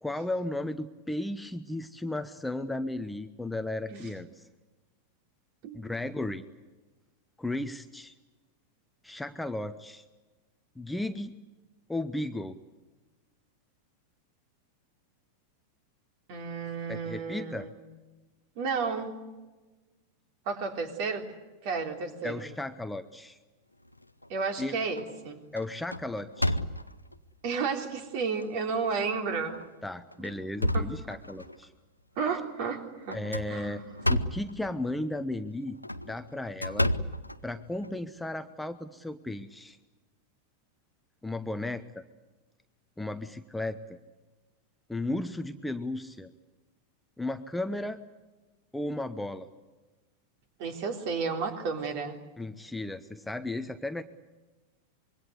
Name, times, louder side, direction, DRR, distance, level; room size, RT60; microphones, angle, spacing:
voice 1, 0.0-4.5 5.7-6.4 7.4-8.1 9.0-10.0 10.8-11.4 11.9-12.6 16.9-17.7 22.2-23.4 24.6-24.8 25.5-26.6 29.8-31.7 33.1-33.8 34.1-35.8 36.1-36.9 37.4-39.8 41.2-42.0 43.0-43.8 44.9-46.3 47.2-48.0 48.7-49.5 52.4-54.0, left 2 dB, 5° left, 9 dB, 1.0 m, -35 dB
voice 2, 16.3-17.7 18.6-19.2 20.5-21.2 21.6-22.5 24.3-25.4 27.4-29.6 30.7-30.9 32.2-33.2 33.5-33.8 50.6-52.2, right 5 dB, 45° right, 5 dB, 3.6 m, -32 dB
sound 1, 23.9-24.5 25.0-25.2 25.6-27.1 27.8-27.9 28.4-28.5 29.4-29.6 30.1-31.6 33.1-34.5 35.7-37.9, left 1 dB, 85° left, 0.8 m, -31 dB
25.5 x 23.0 x 8.2 m, 1.2 s
figure-of-eight pair, 90°, 0 cm